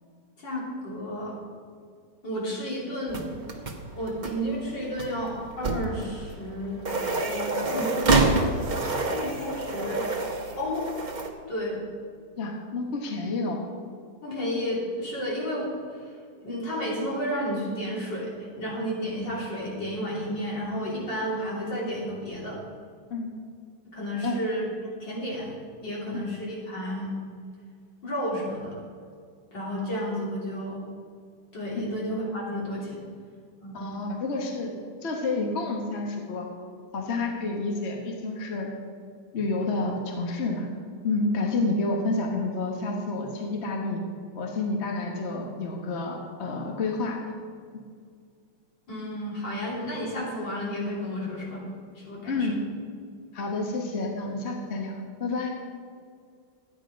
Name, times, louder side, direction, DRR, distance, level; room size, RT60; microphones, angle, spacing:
voice 1, 0.4-1.4 2.2-3.3 4.0-6.8 7.2-8.0 8.9-10.1 10.6-10.9 11.5-11.8 14.2-22.6 23.9-27.1 28.0-28.8 29.5-30.8 31.5-33.0 33.6-34.0 48.9-51.6 52.0-52.5, equal, 75° left, -5 dB, 3.7 m, -32 dB
sound 1, 3.1-11.3, right 3 dB, 35° right, 0.8 m, -28 dB
voice 2, 12.4-13.6 23.1-23.3 24.2-24.4 26.1-26.2 31.7-31.9 33.7-34.7 35.0-36.5 36.9-38.7 39.3-40.7 41.0-44.0 44.3-47.2 52.3-52.6 53.3-55.5, left 3 dB, 40° left, 1 dB, 1.4 m, -29 dB
12.5 x 9.3 x 5.1 m, 2.1 s
omnidirectional pair, 2.0 m